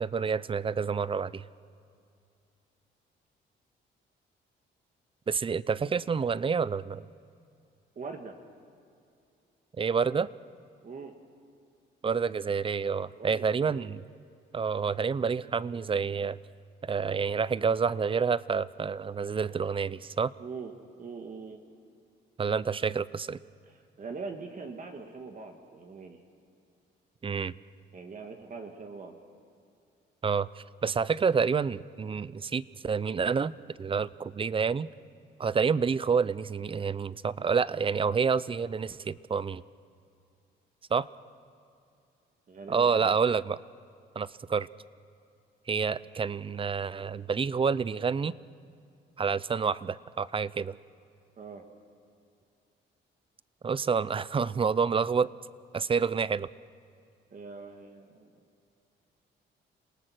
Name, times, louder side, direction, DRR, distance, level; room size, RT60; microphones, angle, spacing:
voice 1, 0.0-1.4 5.3-7.1 9.8-10.3 12.0-14.0 14.5-16.4 16.8-20.3 22.4-23.4 27.2-27.5 30.2-33.5 33.8-34.9 35.4-39.6 40.9-41.1 42.7-43.6 44.2-44.7 45.7-48.3 49.2-50.8 53.6-55.3 55.7-56.5, right 5 dB, 25° right, 19 dB, 0.5 m, -28 dB
voice 2, 7.9-8.4 10.8-11.1 13.2-13.9 20.4-21.6 23.7-26.2 27.9-29.1 42.5-43.1 51.4-51.6 57.3-58.3, right 4 dB, 40° right, 4 dB, 1.6 m, -42 dB
27.5 x 18.5 x 6.2 m, 2.5 s
cardioid pair, 90°, 20 cm